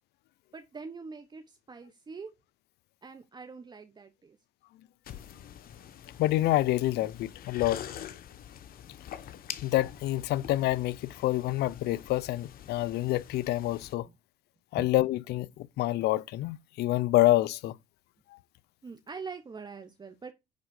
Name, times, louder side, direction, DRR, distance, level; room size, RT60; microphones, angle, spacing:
voice 1, 0.5-2.3 3.0-4.4 7.0-7.1 14.8-14.9 18.8-20.3, right 5 dB, 25° right, 1.1 m, -43 dB
sound 1, 5.0-13.9, left 10 dB, 60° left, 1.2 m, -45 dB
voice 2, 6.2-7.8 9.6-14.1 14.7-17.7, left 16 dB, 75° left, 0.6 m, -27 dB
10.5 x 4.1 x 6.4 m
cardioid pair, 110°, 17 cm